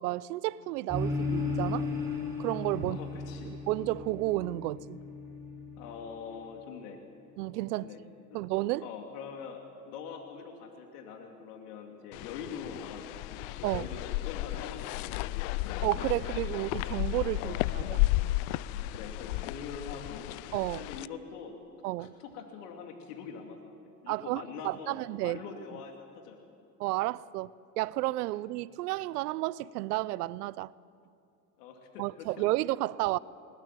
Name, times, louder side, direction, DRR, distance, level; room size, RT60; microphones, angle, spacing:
voice 1, 0.0-1.9 2.4-3.0 3.4-5.0 7.4-7.9 8.3-8.9 13.6-13.9 15.8-18.1 20.5-20.9 21.8-22.1 24.1-25.4 26.8-27.5 27.8-30.7 32.0-33.2, right 18 dB, 75° right, 0.7 m, -32 dB
sound 1, 0.9-6.5, left 3 dB, 5° right, 6.3 m, -35 dB
voice 2, 2.8-3.5 5.8-7.0 7.7-8.0 8.3-8.5 8.8-13.4 13.7-15.5 17.3-17.6 18.9-20.3 20.7-21.7 22.0-25.0 25.2-26.4 31.6-32.4, left 6 dB, 75° left, 2.7 m, -44 dB
sound 2, 12.1-21.1, left 18 dB, 60° left, 0.7 m, -33 dB
21.0 x 20.0 x 7.5 m
hypercardioid pair, 95°, 47 cm